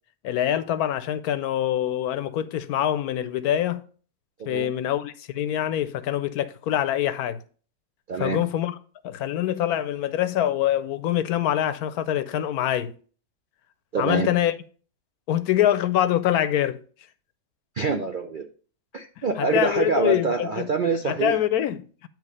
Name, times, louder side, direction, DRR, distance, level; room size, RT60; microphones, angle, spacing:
voice 1, 0.2-3.8 4.5-7.4 8.2-8.8 9.0-12.9 14.0-14.5 15.3-16.8 19.2-20.7 21.1-22.1, left 11 dB, 75° left, 1.1 m, -25 dB
voice 2, 8.1-8.4 13.9-14.3 17.8-18.4 18.9-21.4, right 4 dB, 60° right, 0.5 m, -25 dB
9.3 x 3.1 x 6.4 m
omnidirectional pair, 1.7 m